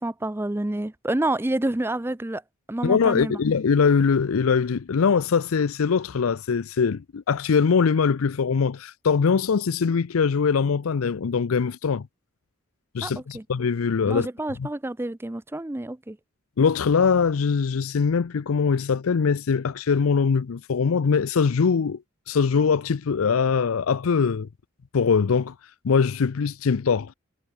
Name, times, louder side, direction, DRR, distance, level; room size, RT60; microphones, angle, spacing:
voice 1, 0.0-2.4 2.7-3.4 13.0-13.4 14.1-16.2, right 1 dB, 10° right, 0.5 m, -28 dB
voice 2, 2.8-12.1 12.9-14.3 14.6-14.7 16.6-24.5 24.9-25.5 25.8-27.1, left 5 dB, 85° left, 0.5 m, -22 dB
head